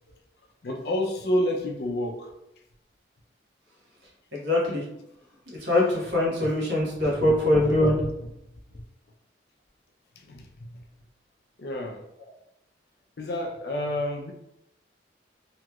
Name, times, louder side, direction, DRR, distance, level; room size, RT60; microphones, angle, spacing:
voice 1, 0.6-2.3 5.6-5.7 6.4-6.5 7.2-7.3 7.6-8.1 8.7-8.8 10.3-10.8 11.6-12.0 13.2-14.3, left 1 dB, 60° left, 0.5 m, -30 dB
voice 2, 4.3-4.8 5.6-8.0, left 1 dB, 75° right, 1.1 m, -23 dB
2.9 x 2.9 x 2.3 m
head